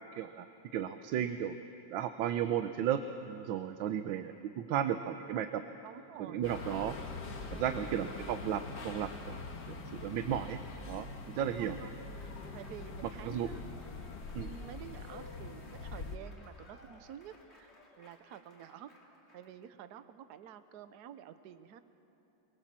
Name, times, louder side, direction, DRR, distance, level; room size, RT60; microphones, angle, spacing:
voice 1, 0.1-0.5 0.7-1.6 1.9-5.6 6.3-7.0 7.5-9.4 9.7-11.1 11.3-11.7 13.2-13.5 14.3-14.5, right 10 dB, 85° right, 9 dB, 1.5 m, -34 dB
voice 2, 5.8-6.5 7.5-8.0 9.9-10.4 11.3-11.9 12.5-13.6 14.4-18.9 19.3-21.8, right 9 dB, 60° right, 11 dB, 1.3 m, -50 dB
sound 1, 6.4-16.2, left 3 dB, 60° left, 2.1 m, -44 dB
Applause / Crowd, 11.5-19.7, left 2 dB, 35° left, 3.1 m, -61 dB
23.0 x 23.0 x 7.4 m, 2.9 s
omnidirectional pair, 2.1 m